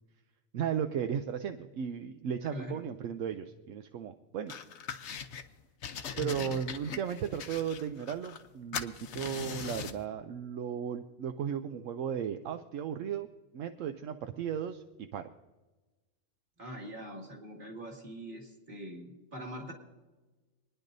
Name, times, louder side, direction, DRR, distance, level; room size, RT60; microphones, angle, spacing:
voice 1, 0.5-4.5 6.2-13.3 13.5-15.3, right 8 dB, 75° right, 8 dB, 1.0 m, -35 dB
voice 2, 2.4-2.9 6.1-6.6 16.6-19.7, equal, 40° right, -1 dB, 2.5 m, -43 dB
sound 1, 4.5-5.4 5.8-8.5 8.7-10.0, left 7 dB, 65° left, 1.0 m, -41 dB
27.5 x 10.0 x 2.6 m, 1.2 s
omnidirectional pair, 1.4 m